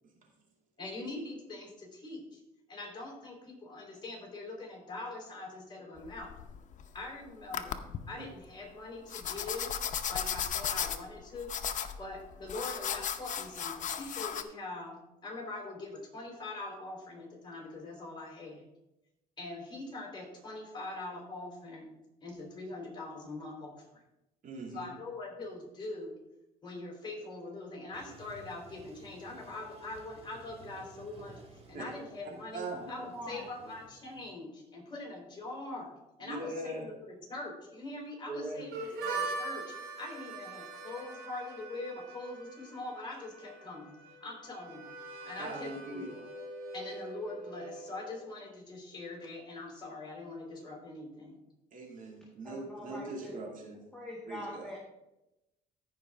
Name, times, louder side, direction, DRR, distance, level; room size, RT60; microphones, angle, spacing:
voice 1, 0.8-2.4 2.7-6.3 6.9-11.5 12.0-18.6 19.4-21.9 22.2-23.8 24.7-26.1 26.6-43.9 44.2-44.9 45.2-46.2 46.7-51.3, left 2 dB, 25° left, -1 dB, 3.9 m, -43 dB
sound 1, 6.0-7.1 7.5-8.0 9.1-14.4, left 8 dB, 50° left, 0.7 m, -35 dB
voice 2, 24.4-24.9 31.7-31.8 32.5-32.8 36.2-36.8 38.3-38.7 45.4-46.1 51.7-53.8 54.2-54.7, right 2 dB, 50° right, 0 dB, 2.5 m, -40 dB
Toilet flush, 27.9-34.3, right 3 dB, 35° right, 2.1 m, -55 dB
voice 3, 32.7-33.5 52.4-53.4 53.9-54.8, left 1 dB, 5° left, -3 dB, 1.6 m, -43 dB
Harmonica, 38.7-48.3, right 3 dB, 80° right, 3.4 m, -42 dB
15.0 x 5.2 x 3.6 m, 0.92 s
cardioid pair, 110°, 17 cm